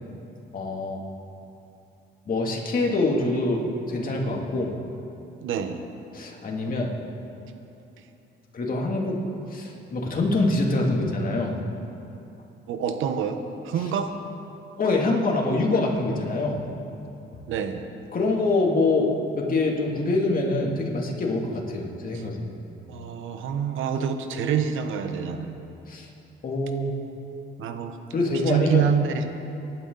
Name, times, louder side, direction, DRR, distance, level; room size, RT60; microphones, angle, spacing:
voice 1, 0.5-1.0 2.3-3.6 3.9-4.7 6.1-6.9 8.5-9.2 9.5-11.5 14.8-16.6 18.1-19.1 19.3-22.5 25.9-26.1 26.4-26.9 28.1-28.8, left 2 dB, 45° left, -1 dB, 2.8 m, -25 dB
voice 2, 5.4-5.8 6.7-6.8 12.7-13.4 13.6-14.1 17.5-17.9 22.1-22.2 22.9-25.6 27.6-28.0 28.5-29.2, right 7 dB, 85° right, 7 dB, 1.1 m, -26 dB
23.0 x 11.5 x 4.1 m, 2.8 s
cardioid pair, 90°, 20 cm